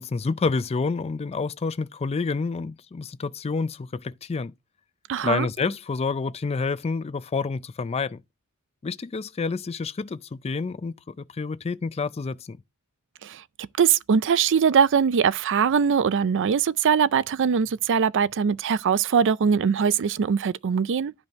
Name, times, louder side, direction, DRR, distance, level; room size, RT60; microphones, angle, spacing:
voice 1, 0.0-4.5 5.2-8.2 8.8-12.6, left 4 dB, 30° left, 0.4 m, -28 dB
voice 2, 5.1-5.5 13.2-13.4 13.8-21.1, right 6 dB, 55° right, 0.4 m, -22 dB
12.0 x 5.3 x 3.5 m
head